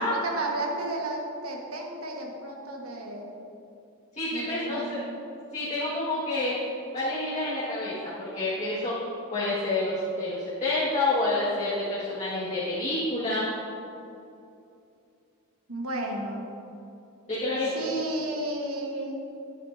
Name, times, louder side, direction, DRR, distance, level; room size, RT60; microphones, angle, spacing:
voice 1, 0.0-3.3 4.3-5.0 15.7-16.5 17.7-19.2, right 2 dB, 80° right, 0 dB, 1.3 m, -33 dB
voice 2, 4.2-5.0 5.5-6.6 6.9-8.9 9.3-13.5 17.3-17.7, left 2 dB, 30° left, -10 dB, 1.6 m, -28 dB
10.5 x 9.0 x 2.7 m, 2.7 s
head